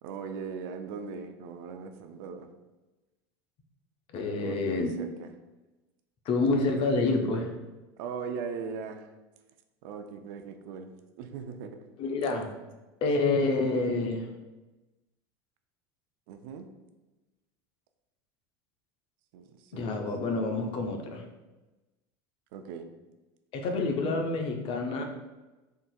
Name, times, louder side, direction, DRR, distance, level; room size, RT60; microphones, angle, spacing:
voice 1, 0.0-2.5 4.4-5.3 8.0-9.1 9.8-11.8 16.3-16.7 19.3-20.0 22.5-22.9, right 5 dB, 70° right, 7 dB, 0.4 m, -39 dB
voice 2, 4.1-4.9 6.3-7.6 12.0-12.5 13.0-14.3 19.7-21.2 23.5-25.0, left 3 dB, 50° left, 4 dB, 0.5 m, -28 dB
3.7 x 2.5 x 2.2 m, 1.1 s
supercardioid pair, 95°, 12 cm